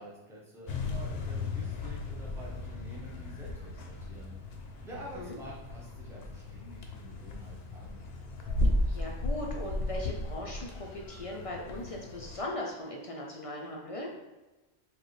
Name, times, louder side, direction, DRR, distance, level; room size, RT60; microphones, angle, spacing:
voice 1, 0.0-4.4 4.8-8.0, right 1 dB, 5° right, -5 dB, 0.7 m, -48 dB
sound 1, 0.7-12.4, left 2 dB, 70° left, 0.8 m, -35 dB
voice 2, 8.9-14.1, left 1 dB, 50° left, -1 dB, 0.4 m, -39 dB
4.9 x 2.3 x 3.1 m, 1.1 s
omnidirectional pair, 1.1 m